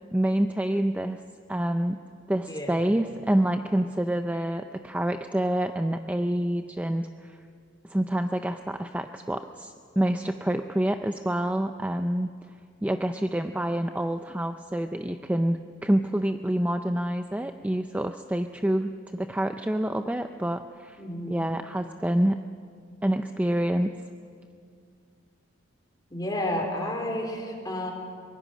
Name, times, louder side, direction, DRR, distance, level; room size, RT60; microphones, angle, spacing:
voice 1, 0.1-1.2 1.5-2.0 2.3-7.4 7.8-12.3 12.8-21.0 21.3-22.4 23.0-23.9, right 1 dB, 5° right, 7 dB, 0.4 m, -27 dB
voice 2, 2.5-2.9 21.0-21.5 26.1-27.9, left 1 dB, 20° left, 1 dB, 3.5 m, -31 dB
24.0 x 21.0 x 6.3 m, 2.3 s
head